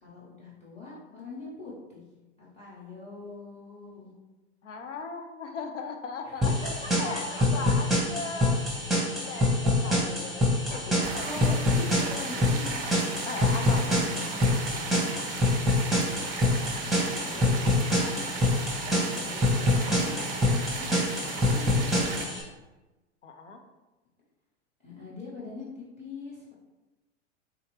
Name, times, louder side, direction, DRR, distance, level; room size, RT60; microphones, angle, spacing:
voice 1, 0.0-2.0 2.4-4.1 6.2-7.7 9.3-9.4 10.7-12.8 13.7-14.5 15.3-16.0 17.2-18.3 19.2-20.1 20.5-21.2 21.4-22.3 24.8-26.5, left 3 dB, 20° left, -8 dB, 1.2 m, -42 dB
voice 2, 4.6-9.5 9.8-11.6 13.3-14.0 14.9-15.1 23.2-23.6, left 4 dB, 85° left, 5 dB, 0.6 m, -38 dB
sound 1, 6.4-22.4, left 1 dB, ahead, 0.9 m, -26 dB
sound 2, 11.0-22.3, right 4 dB, 25° right, 0.4 m, -36 dB
3.4 x 2.8 x 3.2 m, 1.1 s
figure-of-eight pair, 95°, 35 cm